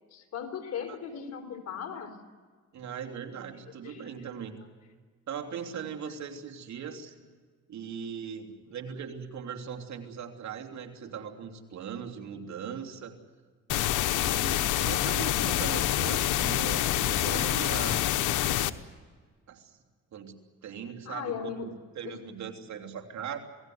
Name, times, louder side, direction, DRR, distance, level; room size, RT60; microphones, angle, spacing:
voice 1, 0.1-2.1 3.8-4.0 21.1-21.7 22.0-22.2, left 8 dB, 60° left, 6 dB, 4.2 m, -37 dB
voice 2, 2.7-4.6 5.3-7.1 7.7-13.2 14.1-18.0 19.5-19.8 20.1-23.4, right 7 dB, 65° right, 4 dB, 3.3 m, -39 dB
sound 1, 13.7-18.7, left 13 dB, 85° left, 1.1 m, -27 dB
27.5 x 18.5 x 7.9 m, 1.5 s
cardioid pair, 90°, 30 cm